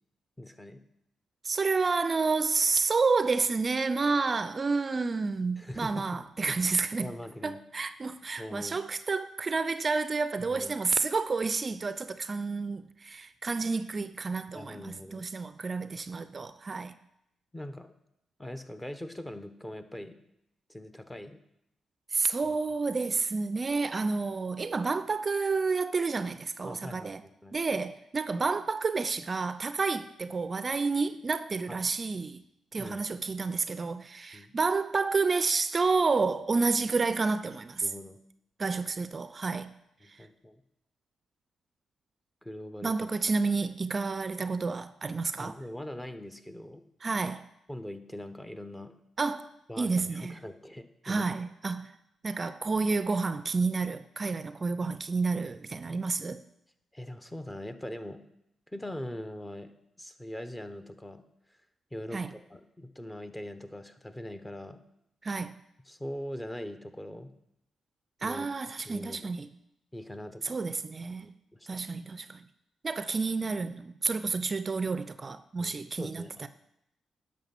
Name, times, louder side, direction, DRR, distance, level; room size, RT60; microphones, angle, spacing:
voice 1, 0.4-0.8 5.6-6.0 6.5-6.6 7.0-7.6 8.4-8.8 10.4-10.7 14.5-15.3 17.5-17.9 18.4-20.2 20.7-21.4 22.4-22.6 26.6-27.6 31.7-31.9 32.8-33.0 34.3-34.5 37.8-38.2 40.0-40.6 42.4-43.1 45.4-46.8 47.7-48.9 49.7-51.3 56.9-58.2 58.7-59.7 60.0-61.2 61.9-64.8 65.9-67.3 68.2-68.5 68.8-69.2 69.9-70.6 71.2-71.8 75.6-76.5, left 1 dB, 15° left, 1.0 m, -42 dB
voice 2, 1.4-7.1 7.4-16.9 22.1-27.2 27.5-32.4 32.7-37.9 38.6-39.7 40.1-40.3 42.8-45.6 47.0-47.5 49.2-50.4 51.0-51.9 52.2-56.4 62.1-62.3 65.2-65.5 68.2-69.5 70.4-71.3 71.7-72.5 72.8-76.5, right 4 dB, 40° right, 0.4 m, -30 dB
10.5 x 6.0 x 6.0 m
hypercardioid pair, 45°, 0 cm